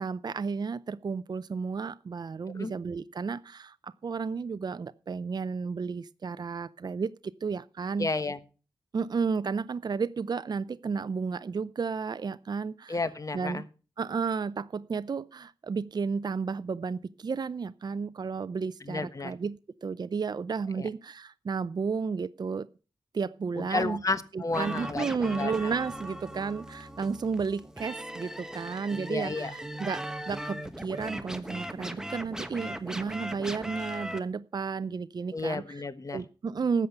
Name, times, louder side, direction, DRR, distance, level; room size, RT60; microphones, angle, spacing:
voice 1, 0.0-8.1 8.9-13.0 13.3-13.7 14.0-22.7 23.1-24.0 24.3-35.6 36.1-36.9, right 5 dB, 50° right, 14 dB, 0.5 m, -32 dB
voice 2, 8.0-8.4 12.9-13.6 18.8-19.3 20.8-20.9 23.5-25.7 29.1-29.5 35.3-36.2, left 3 dB, 40° left, 13 dB, 1.3 m, -32 dB
sound 1, 24.5-34.2, right 1 dB, 5° right, 1.3 m, -38 dB
14.0 x 8.1 x 5.4 m, 0.36 s
cardioid pair, 70°, 9 cm